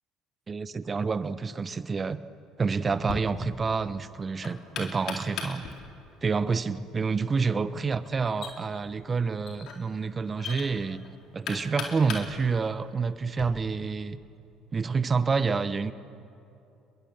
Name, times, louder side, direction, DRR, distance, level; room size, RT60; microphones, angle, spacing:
voice 1, 0.5-2.2 2.6-5.7 6.2-11.0 11.3-14.2 14.7-15.9, right 5 dB, 30° right, 14 dB, 1.1 m, -28 dB
Knock, 2.9-13.5, left 5 dB, 55° left, 4.0 m, -41 dB
30.0 x 22.0 x 7.5 m, 2.7 s
hypercardioid pair, 60°, 0 cm